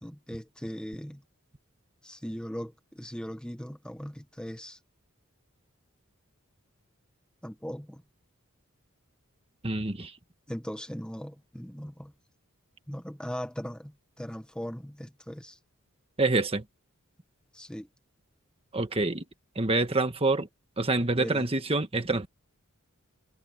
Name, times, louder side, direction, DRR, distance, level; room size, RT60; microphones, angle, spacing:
voice 1, 0.0-1.2 2.0-4.8 7.4-8.0 10.5-12.1 12.9-15.6 17.5-17.9 21.2-21.5, equal, 5° left, 1.4 m, -39 dB
voice 2, 9.6-10.1 16.2-16.6 18.7-19.2 19.5-20.5 20.8-22.3, right 2 dB, 30° right, 1.6 m, -26 dB
head